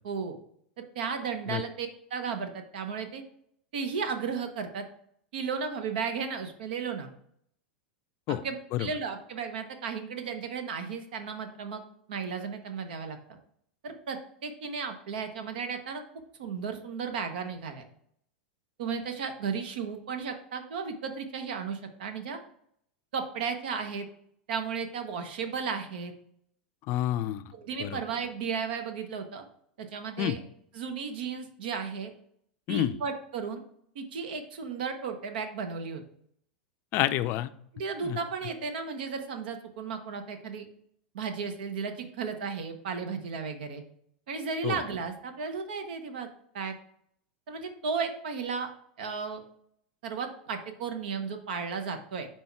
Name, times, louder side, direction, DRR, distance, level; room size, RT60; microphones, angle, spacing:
voice 1, 0.0-0.4 0.8-3.2 3.7-4.8 5.3-7.1 8.3-11.8 12.1-13.2 13.8-16.0 16.4-17.8 18.8-22.4 23.1-24.1 24.5-26.1 27.5-29.4 29.8-30.4 30.7-32.1 32.7-33.6 33.9-36.0 37.7-40.7 41.1-43.8 44.3-46.3 46.5-46.7 47.5-48.7 49.0-49.4 50.0-52.3, right 5 dB, 70° right, 7 dB, 0.9 m, -34 dB
voice 2, 26.9-27.4 27.8-28.0 30.2-30.3 32.7-32.9 36.9-37.5 38.0-38.2 44.6-44.8, left 13 dB, 45° left, 12 dB, 0.4 m, -28 dB
5.5 x 4.2 x 4.5 m, 0.68 s
hypercardioid pair, 105°, 5 cm